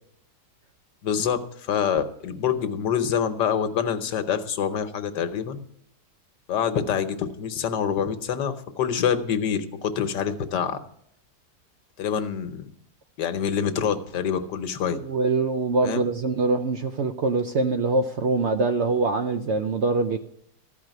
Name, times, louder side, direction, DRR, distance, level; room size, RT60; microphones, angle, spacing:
voice 1, 1.0-5.6 6.5-10.8 12.0-12.7 13.2-15.0 15.8-16.0, left 8 dB, 85° left, 10 dB, 1.6 m, -26 dB
voice 2, 14.9-20.2, right 3 dB, 60° right, 7 dB, 0.7 m, -24 dB
14.5 x 4.9 x 9.1 m, 0.71 s
omnidirectional pair, 1.8 m